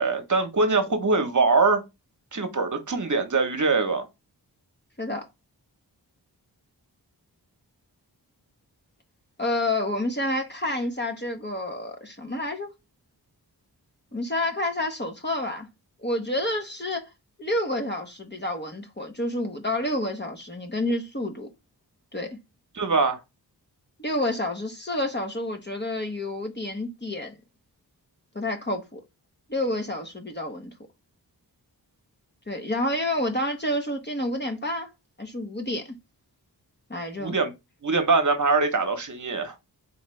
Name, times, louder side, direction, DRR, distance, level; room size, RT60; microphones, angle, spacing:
voice 1, 0.0-1.8 2.3-4.1 22.7-23.2 37.2-37.5 37.8-39.5, right 3 dB, 45° right, 1.1 m, -23 dB
voice 2, 9.4-12.7 14.1-15.7 16.0-17.1 17.4-21.5 22.1-22.4 24.0-27.3 28.3-29.0 29.5-30.7 32.5-34.9 35.2-36.0 36.9-37.4, left 1 dB, 25° left, 1.0 m, -29 dB
4.1 x 3.2 x 3.2 m
wide cardioid pair, 70°, 41 cm